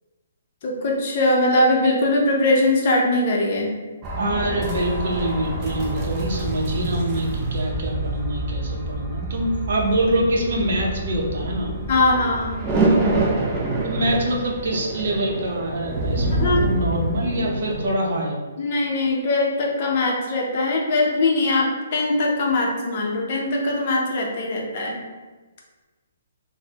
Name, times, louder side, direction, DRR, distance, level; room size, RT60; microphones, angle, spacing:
voice 1, 0.6-3.7 11.9-12.6 16.3-16.6 18.6-25.0, left 2 dB, 40° left, -2 dB, 0.6 m, -21 dB
sound 1, 4.0-17.9, right 2 dB, 15° right, 0.4 m, -26 dB
voice 2, 4.1-11.7 13.8-18.3, right 1 dB, 55° right, -1 dB, 0.7 m, -25 dB
3.8 x 2.1 x 2.8 m, 1.3 s
hypercardioid pair, 165°, 0 cm